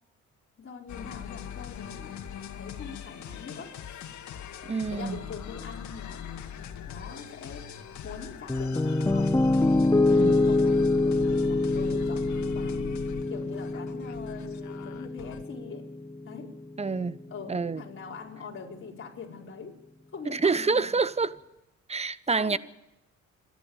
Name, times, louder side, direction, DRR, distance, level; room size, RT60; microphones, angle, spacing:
voice 1, 0.6-2.1 2.5-4.1 4.9-6.5 6.9-7.7 8.0-9.4 10.1-10.7 11.0-15.9 16.2-16.5 17.3-19.8 20.1-20.9 21.9-22.1 22.4-22.6, left 5 dB, 45° left, 5.2 m, -43 dB
sound 1, 0.9-15.4, left 9 dB, 70° left, 2.2 m, -41 dB
voice 2, 4.7-5.2 10.0-10.5 16.8-17.2 17.5-17.8 20.3-21.4 21.9-22.6, right 4 dB, 20° right, 0.9 m, -27 dB
Piano, 8.5-16.6, left 2 dB, 10° left, 0.6 m, -25 dB
27.0 x 11.5 x 8.9 m
cardioid pair, 90°, 30 cm